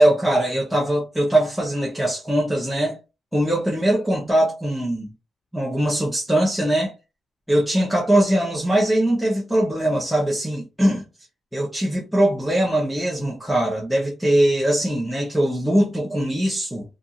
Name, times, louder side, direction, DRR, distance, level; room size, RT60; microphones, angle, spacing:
voice 1, 0.0-3.0 3.3-5.1 5.5-6.9 7.5-11.0 11.5-16.8, right 1 dB, ahead, 0.7 m, -21 dB
2.8 x 2.4 x 2.3 m
wide cardioid pair, 160°, 0 cm